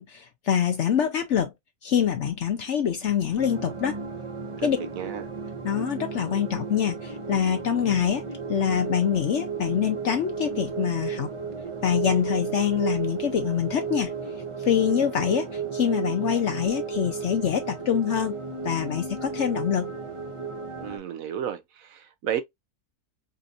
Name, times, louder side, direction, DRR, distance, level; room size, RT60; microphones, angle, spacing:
voice 1, 0.0-1.5 1.8-4.0 4.6-4.8 5.6-11.3 11.8-14.1 14.6-18.3 18.6-19.9, left 8 dB, 65° left, 0.8 m, -25 dB
sound 1, 3.4-21.0, right 5 dB, 45° right, 0.4 m, -34 dB
voice 2, 20.8-22.4, right 9 dB, 70° right, 0.9 m, -32 dB
5.1 x 2.6 x 2.4 m
omnidirectional pair, 1.7 m